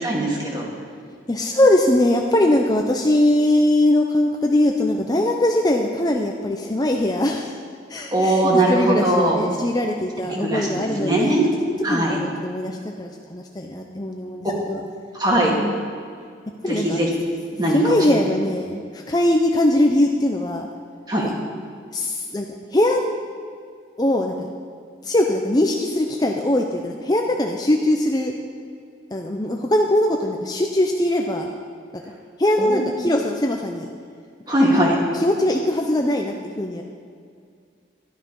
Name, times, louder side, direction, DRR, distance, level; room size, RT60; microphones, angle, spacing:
voice 1, 0.0-0.7 8.1-9.4 10.3-11.4 11.8-12.2 15.2-15.5 16.7-17.1 17.6-18.0 21.1-21.3 32.6-32.9 34.5-35.0, right 1 dB, 20° right, -3 dB, 2.3 m, -20 dB
voice 2, 1.3-7.6 7.9-11.4 11.6-14.8 15.5-15.9 16.6-17.0 17.7-20.7 21.2-21.3 21.9-23.1 24.0-24.5 25.0-28.3 29.1-31.5 32.4-33.9 35.1-36.8, left 1 dB, 20° left, 2 dB, 0.6 m, -21 dB
12.0 x 12.0 x 5.4 m, 2.2 s
head